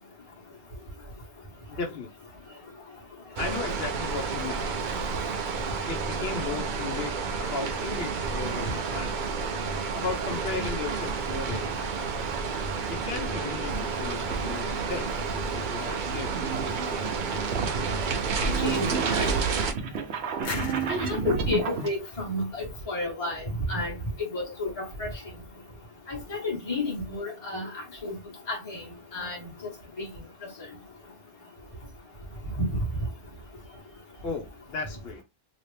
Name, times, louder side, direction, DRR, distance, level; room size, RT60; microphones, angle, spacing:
voice 1, 1.7-2.1 3.4-4.7 5.9-9.1 9.9-11.8 12.9-16.3 34.2-35.2, left 4 dB, 75° left, 0.9 m, -35 dB
sound 1, 3.4-19.7, right 5 dB, 55° right, 0.7 m, -30 dB
sound 2, 14.7-21.9, right 5 dB, 85° right, 0.9 m, -31 dB
voice 2, 18.6-19.3 20.9-23.9 24.3-25.1 26.1-27.7 28.0-28.1 28.5-28.8 29.1-29.4 32.7-32.8, left 2 dB, 35° left, 1.3 m, -31 dB
sound 3, 20.4-23.1, left 3 dB, 55° left, 1.0 m, -39 dB
2.9 x 2.8 x 3.3 m
omnidirectional pair, 1.0 m